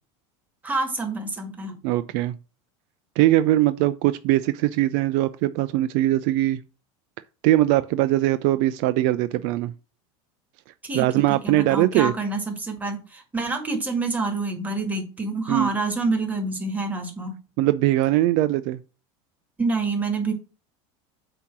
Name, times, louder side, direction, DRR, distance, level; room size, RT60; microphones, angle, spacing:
voice 1, 0.6-1.8 10.8-17.4 19.6-20.3, right 3 dB, 10° right, 1.9 m, -27 dB
voice 2, 1.8-2.4 3.2-6.6 7.4-9.7 10.9-12.1 15.5-15.7 17.6-18.8, right 15 dB, 60° right, 0.5 m, -21 dB
8.4 x 2.9 x 6.0 m
supercardioid pair, 135°, 15 cm